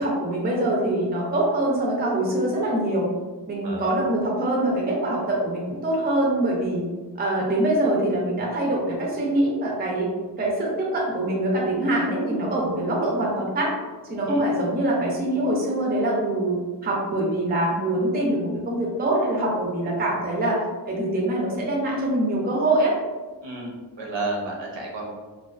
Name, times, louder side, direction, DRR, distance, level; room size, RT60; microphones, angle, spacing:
voice 1, 0.0-3.1 3.5-6.8 7.2-10.1 10.4-13.7 14.1-22.9, right 1 dB, 20° right, -2 dB, 0.4 m, -24 dB
voice 2, 23.4-25.1, right 2 dB, 70° right, -1 dB, 0.7 m, -32 dB
2.3 x 2.3 x 2.3 m, 1.3 s
wide cardioid pair, 100°, 45 cm